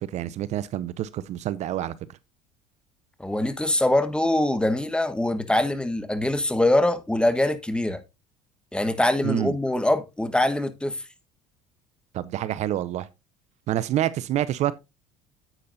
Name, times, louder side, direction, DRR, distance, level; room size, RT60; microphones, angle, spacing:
voice 1, 0.0-2.0 9.2-9.6 12.1-13.1 13.7-14.8, right 12 dB, 55° right, 0.6 m, -27 dB
voice 2, 3.2-8.0 8.7-11.0, left 1 dB, 5° left, 1.4 m, -23 dB
9.8 x 8.4 x 2.6 m
hypercardioid pair, 75°, 14 cm